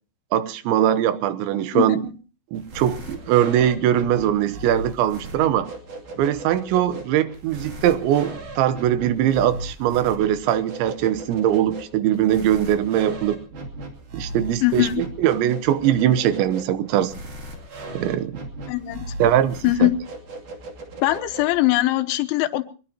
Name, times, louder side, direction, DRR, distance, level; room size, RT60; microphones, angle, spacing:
voice 1, 0.3-2.0 2.5-5.7 6.2-13.4 14.1-17.1 17.9-18.4 19.2-19.9, right 11 dB, 80° right, 13 dB, 3.3 m, -21 dB
sound 1, 2.5-21.7, right 1 dB, 50° right, 3.6 m, -37 dB
voice 2, 14.6-15.0 18.7-19.1 19.6-20.0 21.0-22.6, left 15 dB, 90° left, 10 dB, 3.5 m, -21 dB
23.0 x 20.5 x 2.8 m, 0.36 s
omnidirectional pair, 5.3 m